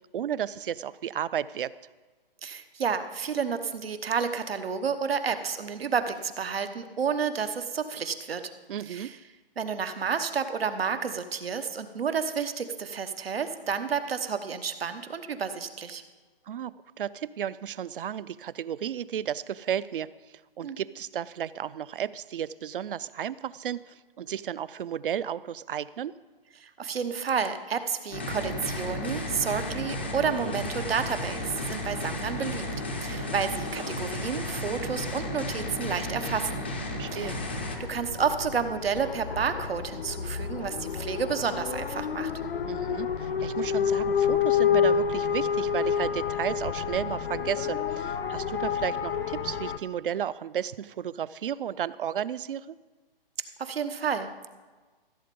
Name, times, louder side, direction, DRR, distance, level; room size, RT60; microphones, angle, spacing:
voice 1, 0.1-1.7 8.7-9.1 16.5-20.1 20.6-26.1 37.0-37.4 42.7-52.7, right 9 dB, 65° right, 18 dB, 0.5 m, -33 dB
voice 2, 2.4-8.4 8.9-9.2 9.6-16.0 20.6-20.8 26.6-32.7 33.0-36.7 37.1-37.4 37.9-42.3 53.6-54.5, right 6 dB, 85° right, 9 dB, 1.1 m, -30 dB
sound 1, 28.1-37.8, left 1 dB, 10° left, 0.4 m, -33 dB
sound 2, 37.1-49.8, left 7 dB, 85° left, 0.9 m, -29 dB
15.0 x 7.7 x 5.3 m, 1.3 s
hypercardioid pair, 165°, 29 cm